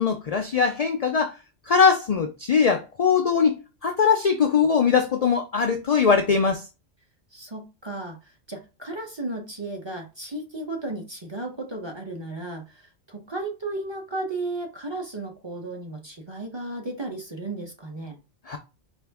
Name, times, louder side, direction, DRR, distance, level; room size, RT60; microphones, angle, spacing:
voice 1, 0.0-1.3 1.7-6.6 18.5-18.6, left 6 dB, 65° left, 0.3 m, -21 dB
voice 2, 7.3-18.2, right 2 dB, 30° right, 0.6 m, -34 dB
4.4 x 2.5 x 3.4 m
omnidirectional pair, 1.2 m